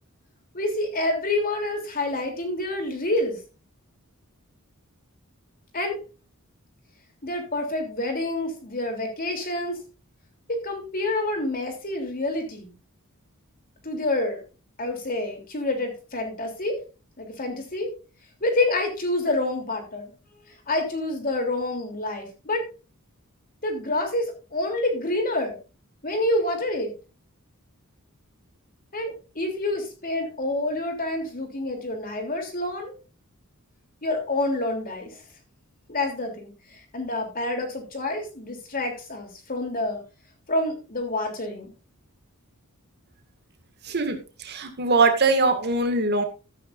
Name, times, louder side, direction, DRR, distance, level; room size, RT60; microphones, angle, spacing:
voice 1, 0.5-3.4 5.7-6.0 7.2-9.8 10.5-12.7 13.8-14.4 14.8-16.8 17.2-17.9 18.4-20.1 20.7-22.6 23.6-25.6 26.0-26.9 28.9-32.9 34.0-35.2 35.9-40.0 40.5-41.7, left 2 dB, 40° left, 3 dB, 3.4 m, -28 dB
voice 2, 43.8-46.2, right 3 dB, 50° right, 6 dB, 2.1 m, -22 dB
14.5 x 9.8 x 2.6 m, 0.31 s
head